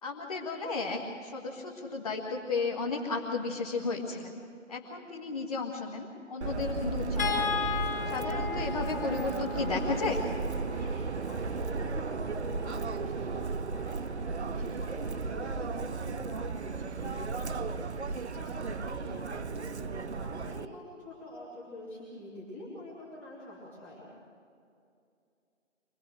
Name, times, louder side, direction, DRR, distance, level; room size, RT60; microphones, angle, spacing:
voice 1, 0.0-4.4 4.7-7.5 8.0-10.2 19.1-19.2, left 3 dB, 30° left, -2 dB, 1.6 m, -34 dB
Subway metro underground, 6.4-20.7, right 4 dB, 60° right, 0.8 m, -34 dB
sound 1, 7.2-13.5 15.0-15.2 15.6-15.7, left 7 dB, 50° left, 3.3 m, -37 dB
voice 2, 10.7-24.1, left 1 dB, 5° left, -9 dB, 2.7 m, -46 dB
24.5 x 20.0 x 6.3 m, 2.5 s
figure-of-eight pair, 165°, 37 cm